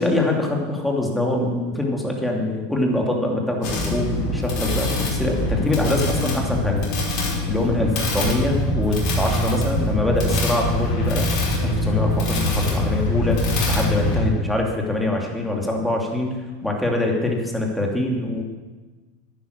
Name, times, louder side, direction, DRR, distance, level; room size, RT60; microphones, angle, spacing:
voice 1, 0.0-6.8 7.5-11.3 11.6-13.4 13.7-16.3 16.6-18.4, left 2 dB, 5° left, 0 dB, 2.8 m, -24 dB
sound 1, 3.6-14.2, left 1 dB, 55° left, 4.9 m, -23 dB
11.0 x 9.8 x 6.7 m, 1.3 s
hypercardioid pair, 90°, 0 cm